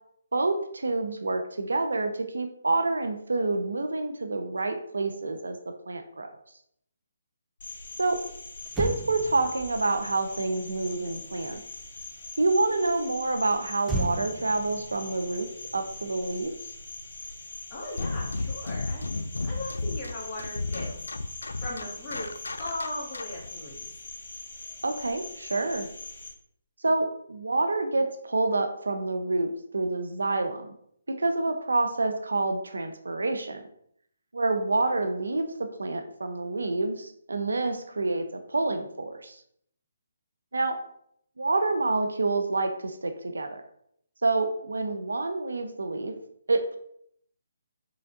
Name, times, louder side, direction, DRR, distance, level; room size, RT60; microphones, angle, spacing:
voice 1, 0.3-5.6 5.9-6.3 8.0-8.2 8.8-11.6 12.4-15.5 15.7-16.5 24.8-25.9 26.8-30.7 31.1-33.6 34.3-39.4 40.5-40.8 41.4-43.6 44.2-46.1 46.5-46.8, right 2 dB, 85° right, 6 dB, 0.6 m, -28 dB
Cricket, 7.6-26.3, left 3 dB, 55° left, 1.6 m, -42 dB
Motor vehicle (road), 8.2-8.3 8.6-12.2 13.8-16.4 16.7-17.0, right 2 dB, 10° right, 0.4 m, -37 dB
voice 2, 17.7-19.1 19.4-20.9 21.6-22.3 22.6-23.9, left 1 dB, 25° left, -5 dB, 1.6 m, -37 dB
sound 1, 18.0-23.5, left 3 dB, 90° left, 0.3 m, -33 dB
4.0 x 3.3 x 3.8 m, 0.69 s
hypercardioid pair, 150°, 0 cm